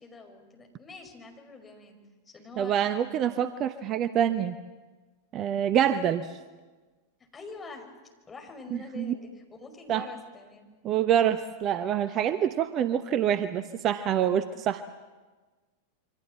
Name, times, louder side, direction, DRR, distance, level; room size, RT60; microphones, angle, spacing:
voice 1, 0.0-2.0 2.2-3.4 7.3-7.9 8.3-10.8, left 3 dB, 15° left, 3 dB, 5.5 m, -46 dB
voice 2, 2.6-4.6 5.3-6.4 9.0-9.1 9.9-10.0 10.8-14.8, right 9 dB, 35° right, 12 dB, 0.9 m, -26 dB
27.5 x 25.0 x 7.6 m, 1.3 s
figure-of-eight pair, 90°, 0 cm